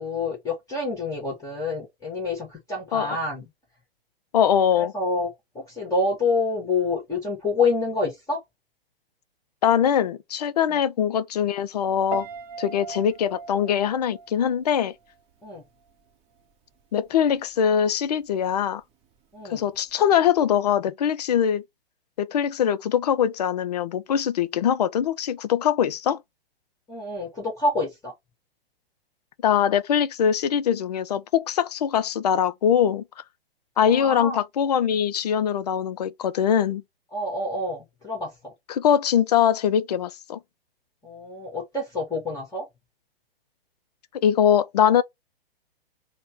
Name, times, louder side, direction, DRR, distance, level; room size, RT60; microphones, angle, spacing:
voice 1, 0.0-3.4 4.8-5.3 5.5-8.4 10.7-10.8 15.4-15.6 19.3-19.6 26.9-28.1 33.9-34.4 37.1-38.5 41.0-42.7, left 3 dB, 10° left, 1.5 m, -27 dB
voice 2, 4.3-4.9 9.6-12.3 12.6-14.9 16.9-18.8 19.5-21.6 22.2-26.2 29.4-33.0 33.8-36.8 38.7-40.4 44.2-45.0, left 9 dB, 45° left, 0.4 m, -22 dB
Piano, 12.1-15.2 15.5-15.9, right 5 dB, 20° right, 0.9 m, -39 dB
4.1 x 2.1 x 4.3 m
figure-of-eight pair, 115°, 30 cm